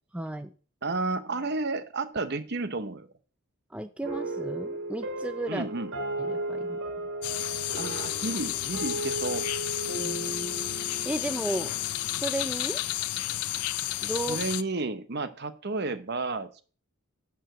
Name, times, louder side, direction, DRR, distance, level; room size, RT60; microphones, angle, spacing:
voice 1, 0.1-0.5 3.7-5.7 6.2-6.8 10.0-10.6 11.1-11.7 12.1-12.8 14.0-14.4, right 1 dB, 5° right, 8 dB, 0.4 m, -34 dB
voice 2, 0.8-3.1 5.5-5.9 7.7-9.5 14.2-16.6, right 3 dB, 45° right, 11 dB, 0.9 m, -32 dB
sound 1, 4.0-12.6, right 2 dB, 70° right, 3.3 m, -36 dB
sound 2, 7.2-14.6, left 14 dB, 85° left, 0.6 m, -32 dB
11.0 x 4.7 x 7.8 m, 0.39 s
head